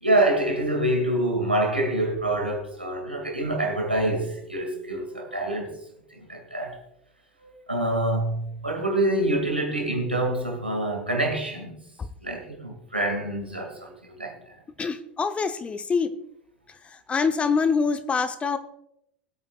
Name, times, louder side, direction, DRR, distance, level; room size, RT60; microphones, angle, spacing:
voice 1, 0.0-5.7 6.1-6.8 7.4-11.8 12.2-14.6, right 1 dB, 90° right, 2.4 m, -26 dB
voice 2, 14.8-16.1 17.1-18.6, left 5 dB, 20° left, 0.8 m, -25 dB
20.5 x 8.7 x 2.5 m
figure-of-eight pair, 75°, 6 cm